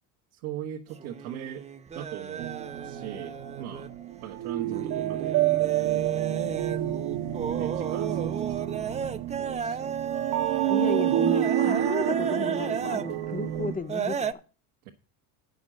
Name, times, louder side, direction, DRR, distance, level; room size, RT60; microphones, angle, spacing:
voice 1, 0.3-1.6 1.9-2.5 2.8-3.9 4.2-5.4 7.6-9.1 9.4-9.9 14.8-14.9, right 10 dB, 85° right, 2 dB, 1.3 m, -40 dB
sound 1, 0.9-4.2 4.6-13.1 13.9-14.3, right 7 dB, 15° right, 0.5 m, -34 dB
sound 2, 2.4-13.8, right 12 dB, 60° right, 0.9 m, -28 dB
voice 2, 10.7-14.3, left 4 dB, 20° left, 12 dB, 0.8 m, -34 dB
8.8 x 6.3 x 6.1 m, 0.36 s
supercardioid pair, 105°, 43 cm